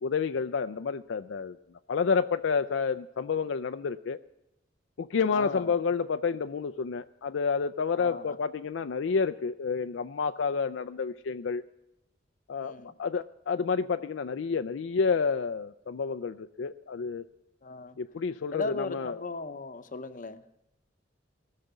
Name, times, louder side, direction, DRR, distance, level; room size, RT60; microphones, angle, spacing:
voice 1, 0.0-1.6 1.9-4.2 5.0-11.6 12.5-17.2 18.0-19.2, left 5 dB, 75° left, 10 dB, 0.4 m, -29 dB
voice 2, 5.3-5.8 7.9-8.4 12.6-12.9 17.6-18.0 18.5-20.4, left 3 dB, 45° left, 10 dB, 0.8 m, -37 dB
19.0 x 6.6 x 8.1 m, 0.88 s
head